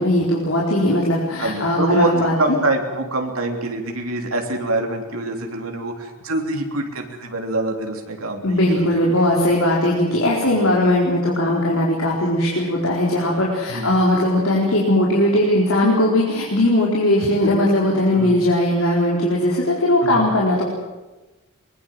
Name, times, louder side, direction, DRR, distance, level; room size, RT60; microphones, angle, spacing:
voice 1, 0.0-2.6 8.4-20.7, left 1 dB, 80° left, -3 dB, 4.5 m, -19 dB
voice 2, 1.4-2.1 2.4-8.6 8.9-9.0 10.4-10.7 13.7-13.9 18.1-18.3 20.0-20.2, right 2 dB, 85° right, 3 dB, 3.3 m, -25 dB
22.5 x 21.0 x 7.8 m, 1.1 s
head